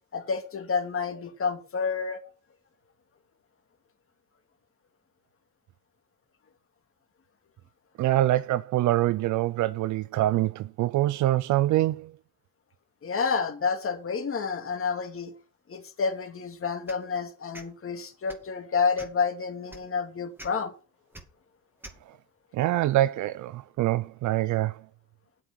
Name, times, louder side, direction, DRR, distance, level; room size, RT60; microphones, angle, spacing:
voice 1, 0.1-2.2 13.0-15.3 15.7-20.7, left 5 dB, 45° left, 2.5 m, -29 dB
voice 2, 8.0-12.1 22.5-24.8, right 15 dB, 75° right, 0.5 m, -25 dB
sound 1, 16.9-17.0 17.5-17.7 18.2-18.5 18.9-19.2 19.7-19.8 20.4-20.5 21.1-21.2 21.8-22.0, right 1 dB, 5° right, 2.3 m, -44 dB
8.7 x 8.1 x 6.2 m
cardioid pair, 90°, 30 cm